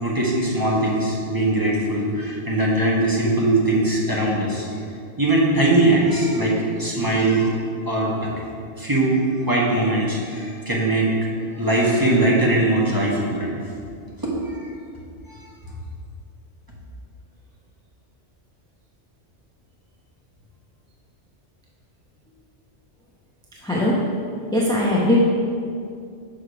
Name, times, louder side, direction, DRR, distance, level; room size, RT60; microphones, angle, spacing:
voice 1, 0.0-4.7 5.2-7.6 7.8-8.3 8.8-11.1 11.5-13.5 14.2-14.7 15.3-15.5, right 1 dB, 20° right, -5 dB, 1.1 m, -21 dB
voice 2, 23.6-24.0 24.5-25.1, left 1 dB, 5° left, -5 dB, 0.7 m, -20 dB
6.3 x 4.9 x 5.0 m, 2.3 s
omnidirectional pair, 1.2 m